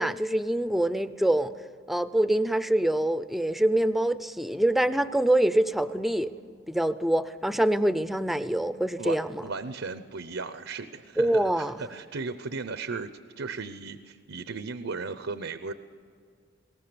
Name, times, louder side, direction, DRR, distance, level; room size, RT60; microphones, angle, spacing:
voice 1, 0.0-1.5 1.9-6.3 6.7-9.4 11.2-11.8, right 1 dB, ahead, 13 dB, 0.5 m, -25 dB
voice 2, 9.0-13.1 13.4-15.7, right 4 dB, 80° right, 11 dB, 0.7 m, -36 dB
21.0 x 18.5 x 6.9 m, 2.3 s
head